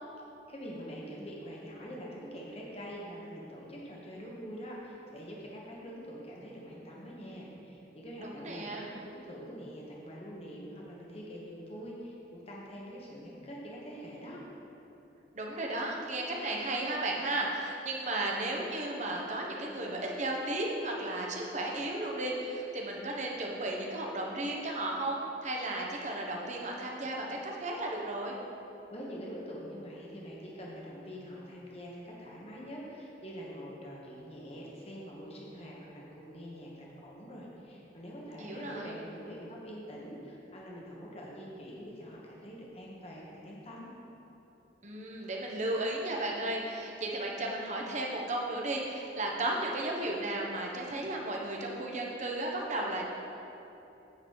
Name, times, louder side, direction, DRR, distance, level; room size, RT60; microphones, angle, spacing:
voice 1, 0.5-14.4 28.9-43.9, equal, 35° left, -4 dB, 1.2 m, -45 dB
voice 2, 8.2-8.9 15.3-28.3 38.4-39.0 44.8-53.0, right 1 dB, 40° right, -1 dB, 1.1 m, -34 dB
9.0 x 4.0 x 7.2 m, 2.9 s
head